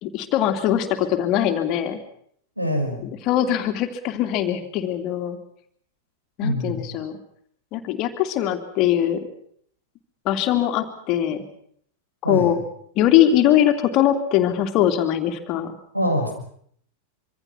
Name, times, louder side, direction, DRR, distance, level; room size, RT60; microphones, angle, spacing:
voice 1, 0.0-2.0 3.0-5.4 6.4-7.2 7.7-9.3 10.2-11.4 12.2-12.6 13.0-15.7, left 11 dB, 40° left, 7 dB, 2.8 m, -21 dB
voice 2, 2.6-3.0 6.4-6.8 12.2-12.5 15.9-16.3, equal, 90° right, 4 dB, 6.0 m, -24 dB
26.0 x 24.5 x 6.1 m, 0.64 s
figure-of-eight pair, 90°, 0 cm